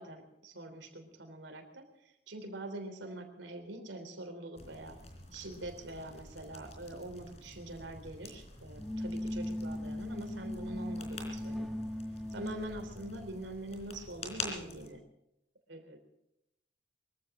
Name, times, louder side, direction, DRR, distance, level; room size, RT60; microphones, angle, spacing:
voice 1, 0.0-5.0 5.3-11.7 12.3-15.0 15.7-16.0, right 1 dB, 85° right, 6 dB, 3.5 m, -44 dB
sound 1, 4.5-14.9, left 3 dB, 35° left, 3.8 m, -47 dB
sound 2, 8.7-13.4, left 1 dB, ahead, 1.1 m, -39 dB
23.5 x 15.0 x 3.8 m, 0.86 s
head